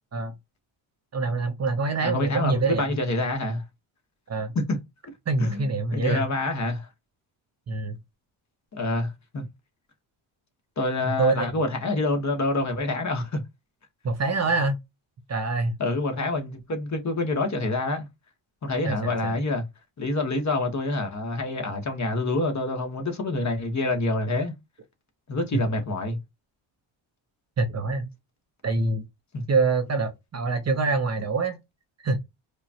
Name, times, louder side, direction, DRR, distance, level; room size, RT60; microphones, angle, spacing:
voice 1, 1.1-2.8 4.3-4.5 5.3-6.2 7.7-8.0 11.0-11.5 14.0-14.8 15.3-15.7 18.8-19.4 25.5-25.6 27.6-28.1 28.6-29.0 29.5-31.6 32.0-32.2, right 3 dB, 30° right, 0.7 m, -25 dB
voice 2, 2.0-3.6 4.5-4.8 5.4-6.9 8.7-9.5 10.8-13.4 15.8-18.1 18.6-19.6 20.0-24.5 25.3-26.2 29.3-29.4, left 2 dB, 35° left, 1.2 m, -27 dB
4.9 x 2.3 x 2.8 m
cardioid pair, 90°, 49 cm